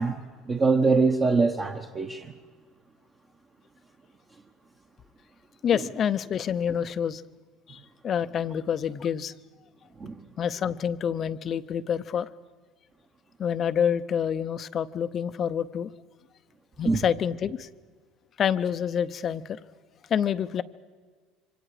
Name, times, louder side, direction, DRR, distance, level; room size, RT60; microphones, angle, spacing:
voice 1, 0.0-2.3 5.7-5.9 10.0-10.2 16.8-17.0, right 4 dB, 20° right, 1.1 m, -24 dB
voice 2, 5.6-7.2 7.7-9.3 10.4-12.3 13.4-15.9 16.8-17.7 18.4-19.6 20.1-20.6, left 8 dB, 30° left, 0.7 m, -27 dB
26.0 x 25.5 x 5.0 m
cardioid pair, 160°, 0 cm